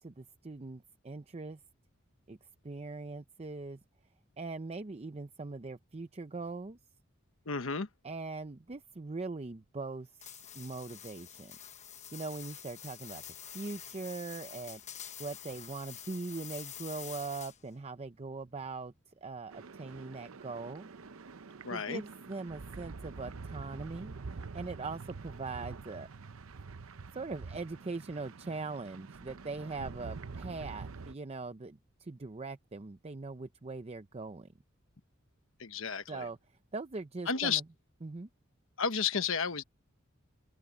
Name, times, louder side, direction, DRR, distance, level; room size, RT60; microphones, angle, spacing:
voice 1, 0.0-1.6 2.3-2.4 2.6-3.8 4.4-6.8 8.0-10.2 10.5-11.5 12.1-13.2 13.5-14.8 15.2-18.9 19.2-20.9 21.4-26.1 27.1-34.5 36.1-36.4 36.7-37.6 38.0-38.3, right 3 dB, 30° right, 0.6 m, -41 dB
voice 2, 7.5-7.9 21.6-22.0 35.6-36.3 37.3-37.6 38.8-39.6, left 6 dB, 70° left, 1.2 m, -32 dB
sound 1, 10.2-17.8, left 9 dB, 35° left, 1.2 m, -47 dB
sound 2, 19.5-31.1, right 4 dB, 80° right, 0.7 m, -46 dB
open air
head